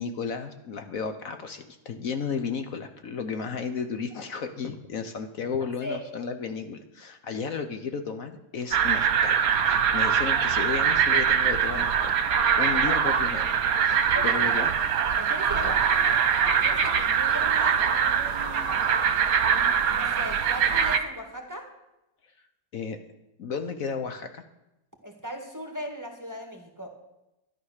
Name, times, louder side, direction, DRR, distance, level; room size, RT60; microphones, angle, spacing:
voice 1, 0.0-13.6 13.8-14.7 15.6-15.7 22.7-23.0 23.4-24.4, left 5 dB, 60° left, 8 dB, 1.2 m, -33 dB
sound 1, 8.7-21.0, right 7 dB, 65° right, 1.4 m, -23 dB
voice 2, 10.1-10.4 12.6-12.9 14.1-14.7 15.2-16.2 16.6-18.8 19.5-21.7 25.0-26.9, equal, 10° right, 3 dB, 1.7 m, -38 dB
13.0 x 11.0 x 6.5 m, 0.93 s
omnidirectional pair, 1.8 m